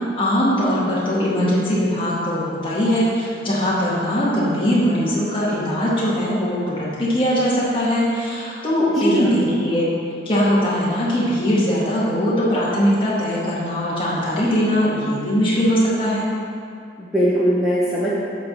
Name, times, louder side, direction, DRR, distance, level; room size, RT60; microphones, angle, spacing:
voice 1, 0.2-9.9 10.3-16.3, equal, 30° left, -8 dB, 1.9 m, -20 dB
voice 2, 9.0-9.4 17.0-18.1, right 1 dB, ahead, -9 dB, 0.9 m, -20 dB
8.2 x 3.8 x 6.3 m, 2.4 s
head